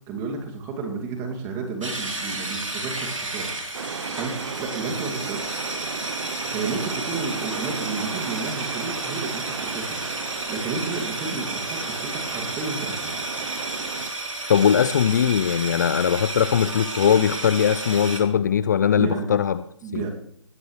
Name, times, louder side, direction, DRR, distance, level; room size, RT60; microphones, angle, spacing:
voice 1, 0.1-3.5 4.1-5.5 6.5-10.0 10.5-13.2 18.9-19.3 19.8-20.1, right 4 dB, 15° right, 2 dB, 2.5 m, -32 dB
sound 1, 1.8-18.2, right 2 dB, 85° right, 3.6 m, -32 dB
sound 2, 3.7-14.1, right 6 dB, 55° right, 0.9 m, -35 dB
voice 2, 14.5-19.6 19.9-20.0, left 8 dB, 35° left, 14 dB, 0.5 m, -20 dB
20.0 x 14.0 x 3.3 m, 0.64 s
figure-of-eight pair, 145°, 16 cm